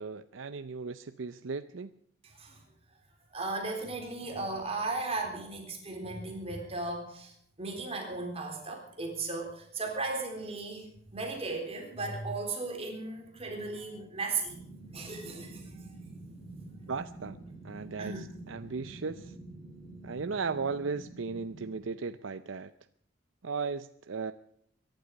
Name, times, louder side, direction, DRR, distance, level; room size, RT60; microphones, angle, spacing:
voice 1, 0.0-1.9 16.9-17.4 17.6-19.3 20.0-22.7 23.4-24.3, right 4 dB, 85° right, 10 dB, 0.6 m, -36 dB
voice 2, 2.2-2.6 3.3-7.3 7.6-10.9 11.1-14.5 14.9-15.7 18.0-18.3, right 3 dB, 30° right, 2 dB, 4.0 m, -36 dB
sound 1, 14.5-21.8, right 2 dB, 15° left, 4.2 m, -48 dB
22.5 x 11.5 x 5.3 m, 0.67 s
head